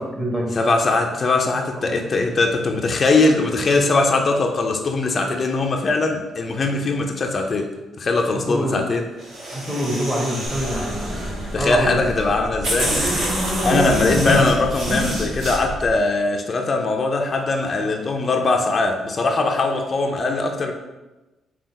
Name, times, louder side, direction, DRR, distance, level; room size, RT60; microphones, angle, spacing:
voice 1, 0.0-0.5 1.8-1.9 8.5-8.8 9.5-12.0 13.6-13.9, equal, 15° right, -2 dB, 1.1 m, -25 dB
voice 2, 0.5-7.7 8.0-9.0 11.5-13.0 13.6-20.7, left 3 dB, 40° left, 3 dB, 0.4 m, -21 dB
sound 1, 9.2-11.6 12.2-12.3 12.6-15.6, equal, 55° right, 1.4 m, -25 dB
sound 2, 10.5-15.9, right 1 dB, 85° right, 1.3 m, -33 dB
3.8 x 2.3 x 4.2 m, 1.1 s
cardioid pair, 90°, 0 cm